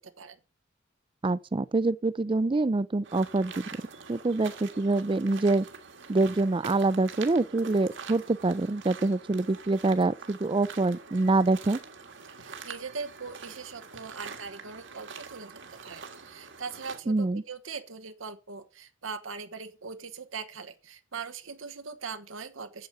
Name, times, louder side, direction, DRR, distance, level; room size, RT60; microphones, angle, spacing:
voice 1, 1.2-3.6 4.1-5.7 6.1-11.8 17.1-17.4, right 2 dB, 25° right, 0.4 m, -25 dB
sound 1, 3.0-17.0, right 5 dB, 65° right, 1.7 m, -45 dB
voice 2, 12.4-22.9, right 5 dB, 85° right, 1.1 m, -41 dB
8.8 x 7.9 x 6.8 m
head